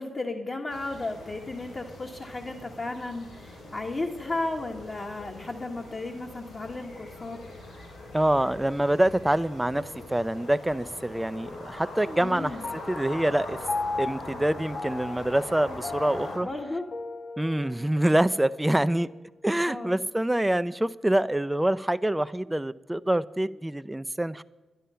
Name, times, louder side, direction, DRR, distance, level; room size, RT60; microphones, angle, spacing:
voice 1, 0.0-7.4 12.2-12.6 16.4-16.9 19.6-20.0, left 2 dB, 45° left, -1 dB, 1.4 m, -34 dB
sound 1, 0.7-16.4, left 1 dB, 90° left, 4.3 m, -42 dB
voice 2, 8.1-9.8 10.1-12.6 12.9-13.6 14.0-16.5 17.4-19.1 19.4-24.4, right 1 dB, 10° right, 14 dB, 0.4 m, -25 dB
Piano, 12.6-19.3, left 3 dB, 65° left, 0.6 m, -37 dB
11.5 x 11.5 x 5.6 m, 1.2 s
supercardioid pair, 50°, 0 cm